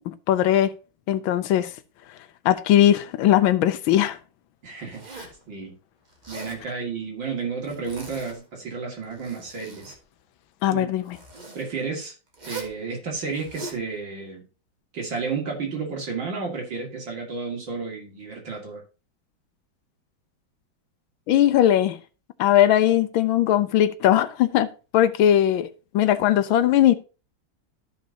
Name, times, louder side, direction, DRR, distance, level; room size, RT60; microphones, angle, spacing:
voice 1, 0.1-0.7 1.1-1.7 2.4-4.2 10.6-11.2 21.3-22.0 22.4-24.7 24.9-27.0, left 11 dB, 80° left, 1.4 m, -19 dB
voice 2, 4.6-5.2 5.5-5.7 6.3-9.9 10.7-10.9 11.5-12.1 12.4-14.4 14.9-18.8, right 5 dB, 65° right, 3.0 m, -32 dB
Zipper (clothing), 4.9-5.4 6.1-6.6 7.6-8.4 9.0-10.0 11.1-11.6 12.3-12.8 13.3-13.8, right 3 dB, 25° right, 1.4 m, -41 dB
13.5 x 5.3 x 2.8 m
omnidirectional pair, 2.2 m